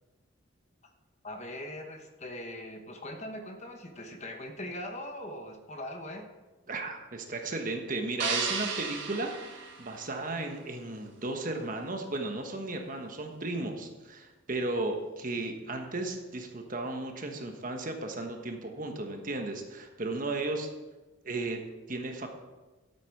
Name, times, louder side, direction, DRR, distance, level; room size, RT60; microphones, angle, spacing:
voice 1, 1.2-6.3, left 1 dB, 35° left, 5 dB, 1.1 m, -41 dB
voice 2, 6.7-20.7 21.2-21.6 21.9-22.3, right 2 dB, 40° right, 4 dB, 1.3 m, -35 dB
sound 1, 8.2-10.5, right 5 dB, 60° right, 1.9 m, -34 dB
12.5 x 8.3 x 4.7 m, 1.2 s
head